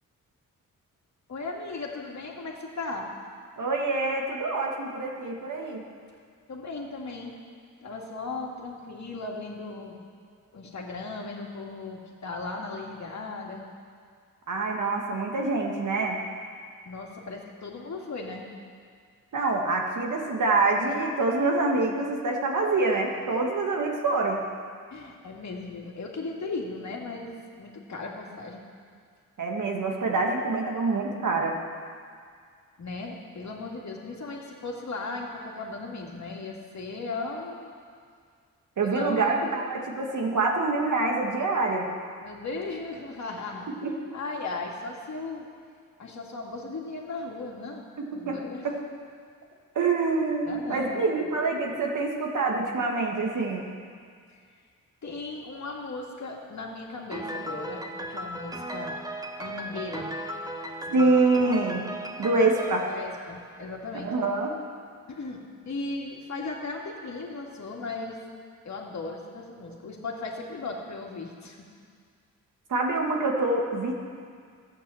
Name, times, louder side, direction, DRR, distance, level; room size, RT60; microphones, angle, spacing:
voice 1, 1.3-3.1 6.5-7.4 7.8-10.0 10.5-13.7 16.9-18.5 24.9-28.6 32.8-37.7 38.8-39.5 42.2-43.7 44.1-45.5 46.0-47.8 48.1-48.7 50.5-51.0 55.0-59.0 59.4-60.2 60.9-61.1 62.9-64.1 65.1-68.2 68.6-71.6, left 3 dB, 60° left, -1 dB, 2.2 m, -37 dB
voice 2, 3.6-5.8 14.5-16.2 19.3-24.4 29.4-31.6 38.8-41.9 43.8-43.9 48.1-48.8 49.8-53.6 60.9-61.9 62.2-62.9 64.0-64.6 72.7-73.9, right 3 dB, 65° right, 1 dB, 1.9 m, -26 dB
Piano, 57.1-63.9, right 1 dB, 10° right, 0.9 m, -36 dB
12.5 x 8.7 x 7.1 m, 2.1 s
cardioid pair, 75°, 33 cm